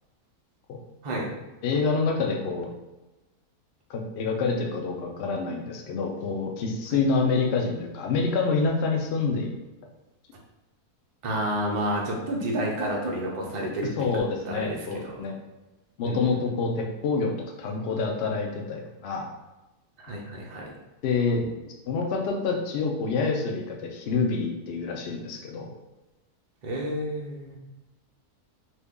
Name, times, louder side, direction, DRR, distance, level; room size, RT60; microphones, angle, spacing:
voice 1, 1.6-2.7 3.9-9.6 14.0-15.3 16.0-17.3 17.6-19.3 21.0-21.4 21.9-25.7, left 4 dB, 65° left, 1 dB, 0.6 m, -27 dB
voice 2, 11.2-14.1 14.4-15.2 16.0-16.2 20.0-20.7 26.6-27.6, right 1 dB, 75° right, -1 dB, 0.4 m, -30 dB
2.7 x 2.6 x 3.6 m, 1.0 s
omnidirectional pair, 1.6 m